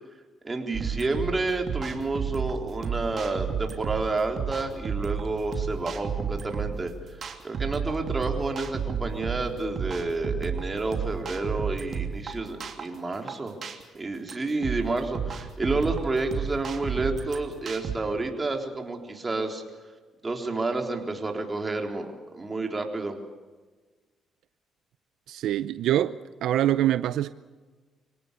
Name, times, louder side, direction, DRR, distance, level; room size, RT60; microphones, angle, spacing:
voice 1, 0.4-6.9 7.4-13.5 14.0-19.6 20.2-22.1 22.3-23.2, right 3 dB, 25° right, 3.9 m, -30 dB
sound 1, 0.7-18.0, right 6 dB, 50° right, 2.9 m, -32 dB
voice 2, 25.3-26.1 26.4-27.3, right 12 dB, 80° right, 0.6 m, -24 dB
25.5 x 18.0 x 6.9 m
cardioid pair, 90°, 0 cm